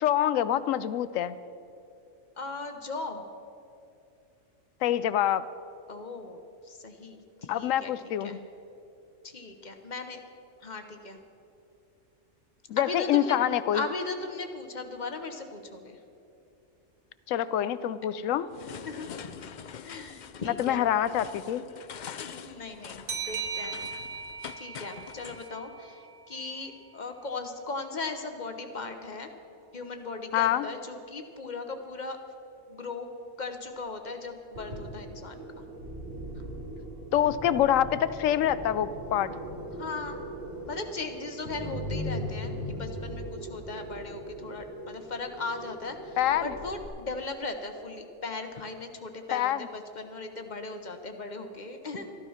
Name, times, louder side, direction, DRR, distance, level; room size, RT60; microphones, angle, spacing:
voice 1, 0.0-1.4 4.8-5.5 7.5-8.4 12.7-13.8 17.3-18.5 20.4-21.6 30.3-30.7 37.1-39.3 46.2-46.5 49.3-49.7, left 11 dB, 80° left, 15 dB, 0.9 m, -26 dB
voice 2, 2.4-3.2 5.9-7.9 8.2-8.4 9.2-10.2 10.6-11.2 12.8-13.4 13.7-16.0 18.8-19.3 19.8-20.8 22.2-23.8 24.6-29.3 29.7-32.2 32.7-33.1 33.4-35.6 36.4-36.5 39.7-40.2 40.7-52.1, left 3 dB, 40° left, 6 dB, 1.0 m, -38 dB
sound 1, 18.5-25.5, left 8 dB, 60° left, 0.5 m, -44 dB
sound 2, 23.1-26.4, right 6 dB, 50° right, 1.0 m, -38 dB
sound 3, 34.5-46.9, equal, 85° right, 3.1 m, -39 dB
13.5 x 12.5 x 5.7 m, 2.7 s
omnidirectional pair, 1.3 m